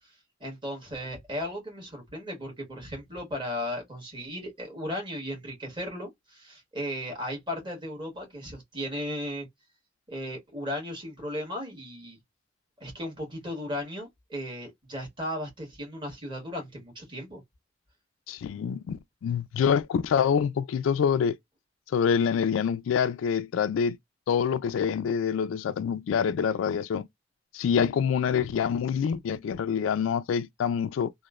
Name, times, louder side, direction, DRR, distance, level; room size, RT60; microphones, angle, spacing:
voice 1, 0.4-9.5 10.1-12.2 12.8-17.4, equal, 25° right, 1.3 m, -36 dB
voice 2, 18.3-21.4 21.9-24.0 24.3-27.1 27.5-31.1, left 7 dB, 85° left, 0.3 m, -26 dB
3.0 x 2.1 x 2.3 m
head